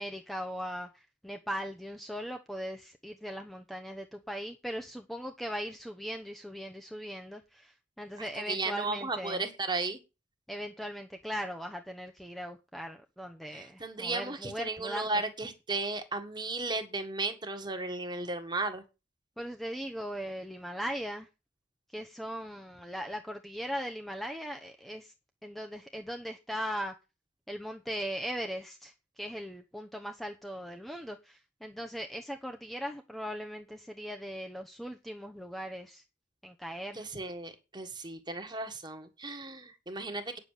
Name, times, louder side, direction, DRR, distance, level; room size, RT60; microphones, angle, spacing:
voice 1, 0.0-9.5 10.5-15.1 19.4-21.3 21.9-25.1 25.4-26.9 27.5-36.0 36.4-37.0, equal, ahead, 0.9 m, -39 dB
voice 2, 8.2-10.0 13.5-18.8 36.9-40.4, right 3 dB, 25° right, 1.6 m, -35 dB
9.5 x 7.3 x 6.6 m
head